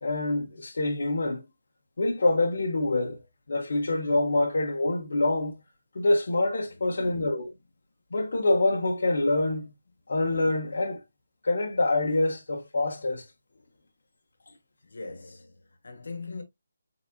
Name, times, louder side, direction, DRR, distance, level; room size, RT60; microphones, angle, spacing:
voice 1, 0.0-1.4 2.0-3.2 3.5-5.6 5.9-7.5 8.1-9.7 10.1-11.0 11.4-13.2, left 2 dB, 60° left, 1.2 m, -26 dB
voice 2, 6.8-7.4 14.8-16.4, left 3 dB, 80° left, 1.5 m, -41 dB
4.2 x 4.1 x 2.4 m
hypercardioid pair, 175°, 0 cm